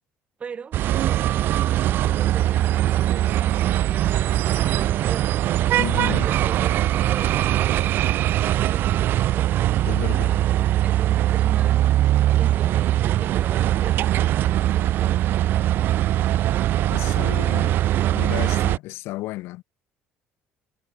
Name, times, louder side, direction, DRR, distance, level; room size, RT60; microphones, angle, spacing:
voice 1, 0.4-5.3 6.0-9.5 10.1-11.9 12.1-15.2, right 6 dB, 30° right, 3.3 m, -39 dB
sound 1, 0.7-18.8, right 13 dB, 60° right, 0.6 m, -21 dB
voice 2, 5.8-6.3 9.8-10.4 16.9-17.8 18.1-19.6, left 19 dB, 80° left, 4.8 m, -32 dB
cardioid pair, 125°, 4 cm